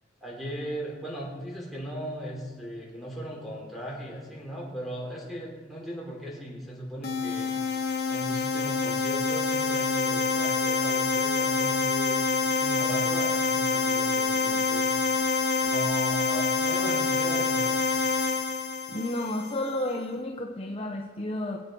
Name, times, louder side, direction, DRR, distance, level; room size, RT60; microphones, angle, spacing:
voice 1, 0.2-7.5 8.1-15.0 15.6-17.8, equal, ahead, -3 dB, 3.6 m, -37 dB
sound 1, 7.0-19.7, left 4 dB, 60° left, 1.5 m, -26 dB
voice 2, 18.9-21.6, left 1 dB, 30° left, 0 dB, 0.9 m, -31 dB
24.0 x 8.4 x 4.7 m, 1.5 s
head